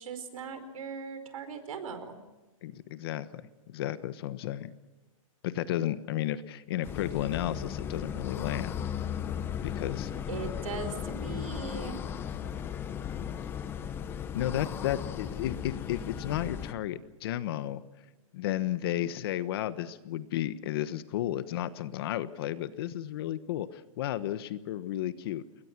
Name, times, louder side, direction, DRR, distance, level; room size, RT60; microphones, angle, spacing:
voice 1, 0.0-2.2 10.3-12.0, right 5 dB, 75° right, 9 dB, 4.8 m, -39 dB
voice 2, 2.6-3.4 3.7-4.7 5.4-8.7 9.6-10.1 14.3-17.8 18.3-25.4, left 12 dB, 45° left, 13 dB, 1.2 m, -33 dB
sound 1, 6.8-16.7, left 8 dB, 10° left, 0.9 m, -36 dB
29.0 x 22.0 x 6.1 m, 1.1 s
hypercardioid pair, 165°, 18 cm